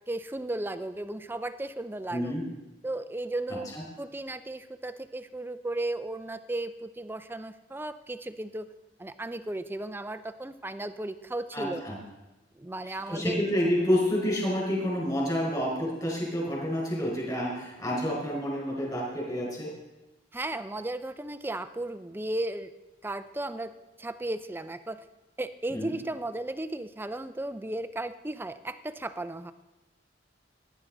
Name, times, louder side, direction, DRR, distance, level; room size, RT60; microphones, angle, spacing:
voice 1, 0.1-2.3 2.8-8.7 9.0-11.8 12.6-13.4 20.3-22.7 23.0-25.0 25.4-29.5, right 2 dB, 10° right, 12 dB, 0.5 m, -35 dB
voice 2, 2.1-2.4 3.7-3.8 11.5-12.0 12.8-19.7 25.7-25.9, equal, 20° left, -3 dB, 4.8 m, -29 dB
17.5 x 10.5 x 3.9 m, 1.1 s
head